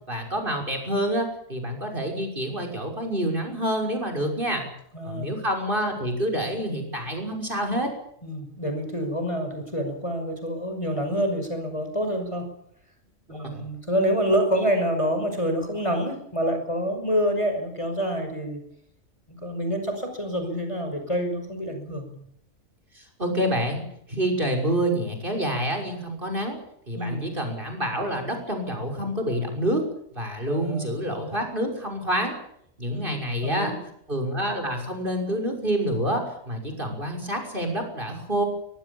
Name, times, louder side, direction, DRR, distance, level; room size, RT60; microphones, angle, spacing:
voice 1, 0.1-4.6 5.0-7.9 13.4-13.6 22.9-23.8 24.1-26.6 26.9-29.8 30.1-32.3 32.8-33.7 34.1-38.4, right 1 dB, 40° right, 3 dB, 6.4 m, -27 dB
voice 2, 4.9-5.3 8.2-12.5 13.3-18.6 19.3-22.3 26.9-27.3 30.5-30.9 32.9-33.8, equal, 25° left, 5 dB, 5.8 m, -27 dB
22.5 x 22.5 x 7.2 m, 0.70 s
omnidirectional pair, 1.4 m